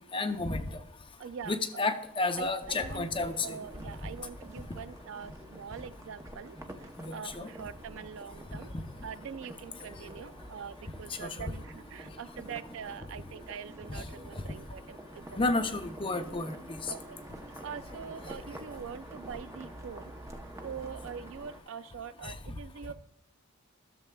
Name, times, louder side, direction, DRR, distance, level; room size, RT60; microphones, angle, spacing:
voice 1, 0.1-0.6 1.5-3.5 7.0-7.5 11.2-11.5 13.9-14.0 15.4-16.6 22.2-22.3, left 3 dB, 25° left, 7 dB, 0.6 m, -31 dB
voice 2, 1.2-1.9 2.3-8.7 9.0-15.7 16.9-17.2 17.6-20.1 20.6-22.9, right 7 dB, 60° right, 15 dB, 0.3 m, -44 dB
sound 1, 2.6-21.6, right 1 dB, 15° right, 0.7 m, -47 dB
14.5 x 7.0 x 2.3 m, 0.83 s
head